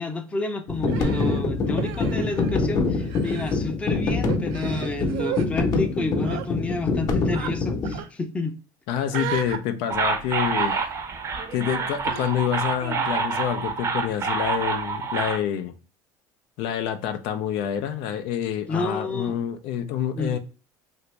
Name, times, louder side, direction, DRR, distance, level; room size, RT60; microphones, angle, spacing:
voice 1, 0.0-8.6 18.7-19.4 20.1-20.4, left 3 dB, 15° left, 0.5 m, -30 dB
sound 1, 0.7-8.0, left 3 dB, 45° left, 0.8 m, -25 dB
Human voice, 0.9-2.7 3.0-3.6 4.3-5.5 6.2-6.5 7.3-7.5 7.8-8.1 9.1-9.6 10.4-11.0 12.0-12.3, right 9 dB, 75° right, 0.5 m, -34 dB
voice 2, 8.9-10.8 11.5-15.7 16.6-20.4, left 9 dB, 70° left, 0.4 m, -27 dB
sound 2, 9.9-15.4, right 4 dB, 35° right, 0.6 m, -27 dB
2.9 x 2.6 x 3.1 m
cardioid pair, 120°, 9 cm